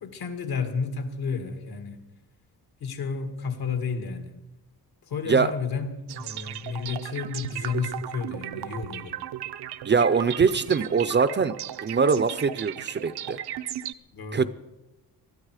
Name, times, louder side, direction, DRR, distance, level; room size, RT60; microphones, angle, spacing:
voice 1, 0.0-2.1 2.8-4.3 5.1-5.9 6.1-9.2 14.1-14.5, left 5 dB, 70° left, 7 dB, 2.1 m, -31 dB
sound 1, 6.1-13.9, right 11 dB, 90° right, 0.7 m, -35 dB
voice 2, 9.8-11.6 11.8-13.4 14.3-14.5, right 5 dB, 30° right, 13 dB, 0.5 m, -22 dB
20.0 x 13.0 x 4.9 m, 1.0 s
wide cardioid pair, 145°, 38 cm